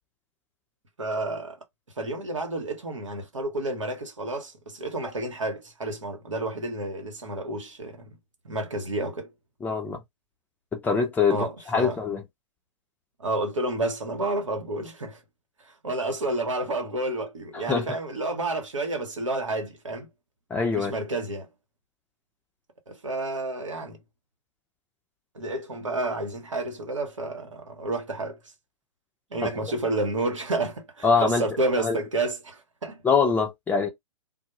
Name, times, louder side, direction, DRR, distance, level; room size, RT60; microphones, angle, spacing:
voice 1, 1.0-1.6 2.0-8.1 8.4-9.3 11.3-12.0 13.2-15.2 15.7-20.1 20.7-21.5 22.9-24.0 25.3-28.4 29.3-33.0, right 2 dB, 85° right, 0.9 m, -30 dB
voice 2, 9.6-10.0 10.7-12.2 17.5-17.8 20.5-20.9 29.4-29.5 31.0-31.4 31.8-32.0 33.0-33.9, left 5 dB, 10° left, 0.5 m, -24 dB
2.2 x 2.0 x 2.9 m
figure-of-eight pair, 115°, 16 cm